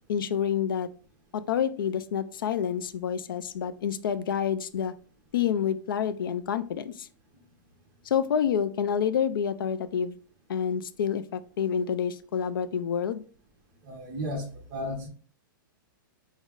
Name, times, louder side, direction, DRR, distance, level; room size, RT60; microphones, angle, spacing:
voice 1, 0.1-0.9 1.3-4.9 5.3-7.1 8.0-10.1 10.5-13.2, left 8 dB, 90° left, 0.4 m, -28 dB
voice 2, 13.8-15.1, left 1 dB, 35° right, 1.0 m, -34 dB
5.2 x 2.0 x 3.7 m
hypercardioid pair, 155°, 11 cm